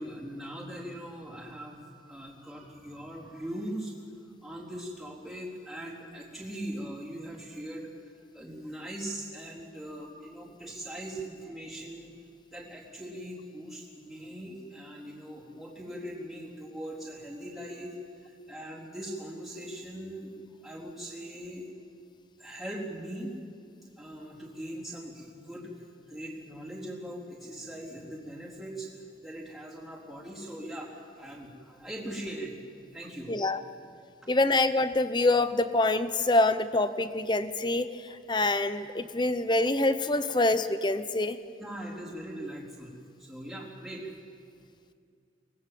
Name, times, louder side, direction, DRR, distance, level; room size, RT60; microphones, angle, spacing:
voice 1, 0.0-1.8 2.1-7.9 8.3-12.1 12.5-21.7 22.4-23.4 24.0-25.7 26.1-28.9 29.2-32.5 32.9-33.3 34.0-34.3 41.6-42.9 43.2-44.1, right 1 dB, ahead, -6 dB, 3.9 m, -40 dB
voice 2, 33.3-33.6 34.3-37.9 38.3-41.4, left 2 dB, 25° left, 12 dB, 0.8 m, -25 dB
24.5 x 19.5 x 7.7 m, 2.3 s
head